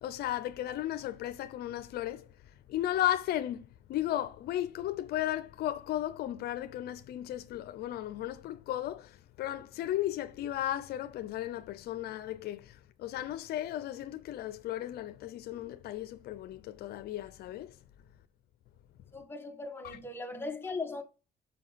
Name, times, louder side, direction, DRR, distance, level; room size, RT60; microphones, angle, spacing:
voice 1, 0.0-17.8 19.8-20.0, left 13 dB, 70° left, 0.6 m, -35 dB
voice 2, 19.1-21.0, left 3 dB, 15° left, 1.5 m, -38 dB
6.0 x 5.2 x 5.7 m
cardioid pair, 110°, 17 cm